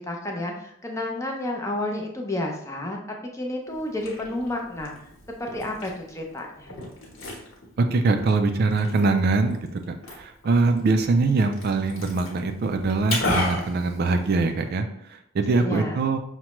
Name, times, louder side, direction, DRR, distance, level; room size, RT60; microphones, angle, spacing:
voice 1, 0.0-4.9 5.4-6.7 15.5-16.0, left 1 dB, 15° left, 0 dB, 0.5 m, -31 dB
Liquid, 3.7-14.7, left 1 dB, 70° left, 1.0 m, -35 dB
voice 2, 7.8-14.9 15.3-16.2, right 3 dB, 50° right, 6 dB, 0.3 m, -23 dB
5.8 x 2.1 x 2.9 m, 0.72 s
head